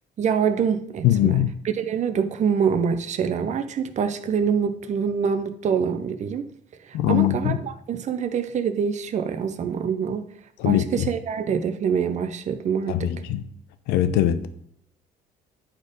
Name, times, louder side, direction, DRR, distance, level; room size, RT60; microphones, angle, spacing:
voice 1, 0.2-1.4 1.8-6.5 6.8-7.5 7.9-10.3 10.6-13.1, right 7 dB, 45° right, 0.8 m, -25 dB
voice 2, 1.0-1.5 6.9-7.6 10.6-11.1 12.9-13.5 13.9-14.5, left 12 dB, 85° left, 0.7 m, -21 dB
10.0 x 4.4 x 5.2 m
cardioid pair, 110°, 17 cm